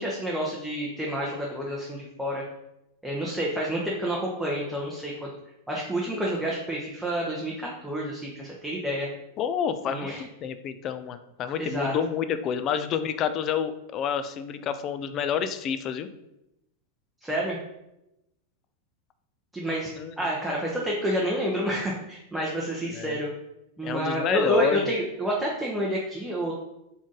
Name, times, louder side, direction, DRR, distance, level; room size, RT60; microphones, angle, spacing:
voice 1, 0.0-2.4 3.0-5.3 5.7-9.1 9.9-10.2 11.6-11.9 17.2-17.6 19.5-23.3 23.8-26.5, equal, 5° right, -4 dB, 0.7 m, -29 dB
voice 2, 9.4-16.1 20.0-20.3 22.9-23.2 23.8-24.9, left 8 dB, 35° left, 10 dB, 0.4 m, -29 dB
3.8 x 3.6 x 3.8 m, 0.88 s
figure-of-eight pair, 90°, 0 cm